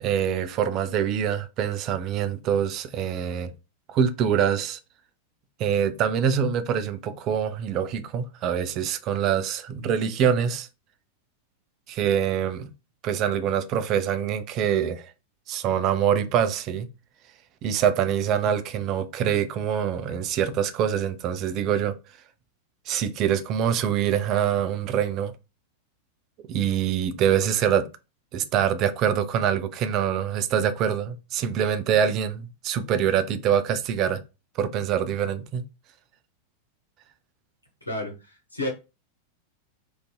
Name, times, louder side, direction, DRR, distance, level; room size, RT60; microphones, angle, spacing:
voice 1, 0.0-3.5 3.9-4.8 5.6-10.7 11.9-12.7 13.0-15.1 15.5-16.9 17.6-21.9 22.9-25.3 26.5-27.9 28.3-34.2 34.6-35.6, right 8 dB, 35° right, 0.3 m, -25 dB
voice 2, 37.9-38.7, left 1 dB, 85° left, 0.8 m, -31 dB
2.5 x 2.4 x 2.2 m
figure-of-eight pair, 90°, 0 cm